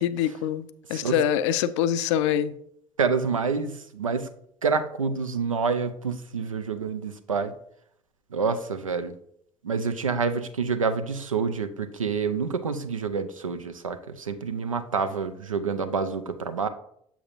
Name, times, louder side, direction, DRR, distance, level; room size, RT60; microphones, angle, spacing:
voice 1, 0.0-2.5, left 10 dB, 65° left, 0.4 m, -25 dB
voice 2, 3.0-4.3 4.6-7.5 8.3-9.1 9.6-16.7, right 5 dB, 85° right, 0.4 m, -27 dB
7.0 x 7.0 x 2.4 m
figure-of-eight pair, 55°, 17 cm